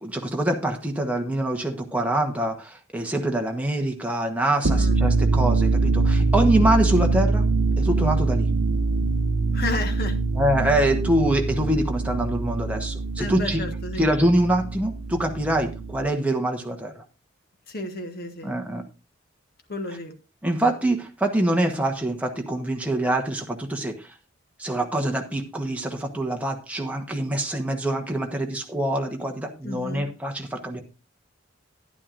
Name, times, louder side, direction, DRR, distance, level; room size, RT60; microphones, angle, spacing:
voice 1, 0.0-7.4 7.8-8.5 10.3-13.6 14.0-16.9 18.4-18.8 20.4-24.1 24.6-30.8, right 1 dB, 5° right, 2 dB, 1.1 m, -25 dB
sound 1, 4.5-16.1, right 3 dB, 70° right, 0.8 m, -23 dB
voice 2, 9.5-10.1 13.2-14.1 17.7-18.6 19.7-20.1 29.6-30.0, left 2 dB, 50° left, 5 dB, 1.5 m, -32 dB
12.0 x 10.0 x 2.6 m, 0.33 s
head